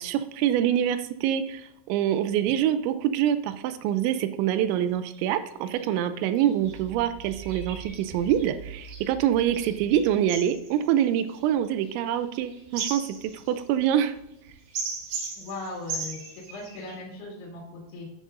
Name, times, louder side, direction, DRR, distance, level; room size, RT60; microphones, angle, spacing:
voice 1, 0.0-14.2, right 10 dB, 85° right, 11 dB, 2.9 m, -25 dB
sound 1, 5.1-5.3 5.8-5.9 6.4-16.9, right 5 dB, 65° right, 3.9 m, -38 dB
voice 2, 15.4-16.2 16.5-18.1, left 2 dB, 65° left, -3 dB, 4.0 m, -38 dB
12.0 x 10.0 x 2.5 m, 0.86 s
omnidirectional pair, 5.2 m